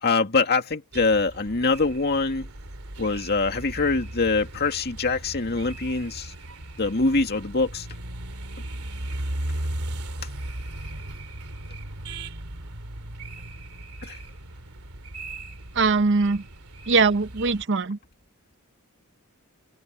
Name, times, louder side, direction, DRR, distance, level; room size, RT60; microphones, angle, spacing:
voice 1, 0.0-2.5 3.0-6.3 6.8-7.9 14.0-14.2, left 3 dB, 45° left, 2.2 m, -24 dB
sound 1, 0.9-17.6, right 1 dB, 80° right, 2.7 m, -37 dB
voice 2, 15.7-16.4 16.9-18.0, right 4 dB, 55° right, 0.8 m, -21 dB
head